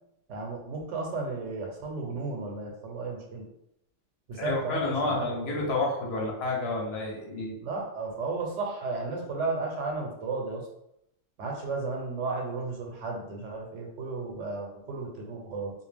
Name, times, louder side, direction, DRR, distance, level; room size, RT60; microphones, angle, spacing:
voice 1, 0.3-3.5 4.3-5.7 6.1-6.2 7.6-10.7 11.4-15.7, right 3 dB, 80° right, 0 dB, 1.0 m, -34 dB
voice 2, 4.3-7.5, left 2 dB, 65° left, -2 dB, 0.9 m, -30 dB
2.4 x 2.1 x 3.2 m, 0.78 s
omnidirectional pair, 1.2 m